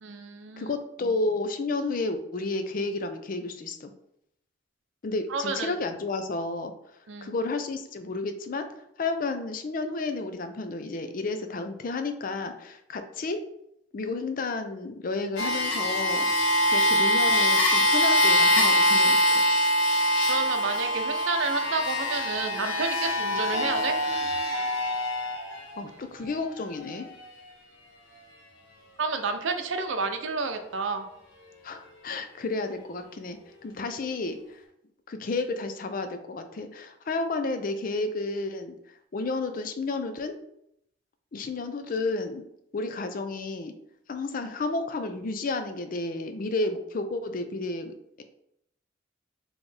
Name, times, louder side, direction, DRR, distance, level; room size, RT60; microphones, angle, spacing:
voice 1, 0.0-0.7 5.3-5.7 7.1-7.3 20.3-24.0 29.0-31.1, right 4 dB, 90° right, 7 dB, 0.6 m, -30 dB
voice 2, 0.6-3.9 5.0-6.7 7.2-8.7 9.0-13.4 13.9-16.3 16.7-19.4 25.8-27.1 31.6-34.6 35.1-38.7 39.1-40.4 41.3-42.4 42.7-43.7 44.1-48.2, left 3 dB, 45° left, 8 dB, 0.4 m, -31 dB
sound 1, 15.4-25.8 26.6-26.7, left 1 dB, 85° left, 1.0 m, -24 dB
4.2 x 3.0 x 3.3 m, 0.76 s
head